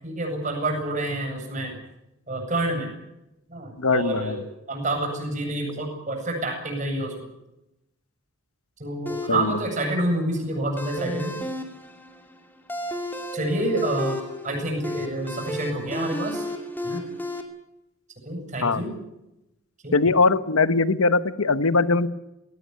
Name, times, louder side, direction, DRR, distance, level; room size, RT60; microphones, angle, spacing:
voice 1, 0.0-1.8 2.3-2.9 3.5-7.3 8.8-11.4 13.3-14.2 14.4-16.4 16.8-17.0 18.2-18.9 19.8-19.9, right 1 dB, 35° right, 3 dB, 8.0 m, -28 dB
voice 2, 3.8-4.4 9.3-9.6 18.6-18.8 19.9-22.1, left 3 dB, 90° left, 13 dB, 1.1 m, -21 dB
sound 1, 9.1-17.4, left 1 dB, 10° left, 2.6 m, -33 dB
19.5 x 19.0 x 9.7 m, 0.92 s
head